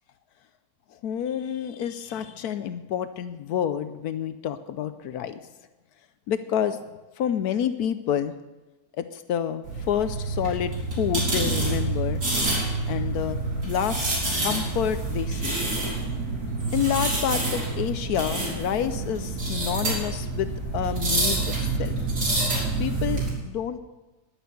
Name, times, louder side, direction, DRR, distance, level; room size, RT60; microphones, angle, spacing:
voice 1, 0.9-5.4 6.3-6.8 7.2-8.3 9.0-12.2 12.9-13.4 13.6-14.1 14.4-15.6 16.7-21.5 21.8-22.0 22.8-23.8, left 9 dB, 75° left, 11 dB, 1.2 m, -28 dB
sound 1, 9.6-23.3, right 2 dB, 85° right, 4.5 m, -27 dB
11.0 x 10.0 x 8.2 m, 1.1 s
omnidirectional pair, 1.7 m